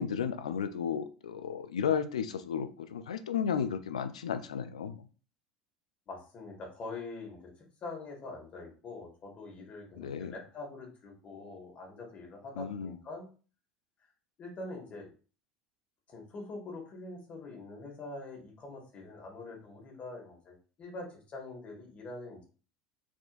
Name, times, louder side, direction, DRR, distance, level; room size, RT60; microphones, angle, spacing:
voice 1, 0.0-5.0 10.0-10.3 12.6-13.0, left 7 dB, 80° left, 11 dB, 0.4 m, -33 dB
voice 2, 6.1-13.3 14.4-15.1 16.1-22.5, left 3 dB, 40° left, 1 dB, 1.9 m, -44 dB
4.5 x 4.3 x 2.6 m, 0.37 s
hypercardioid pair, 75°, 3 cm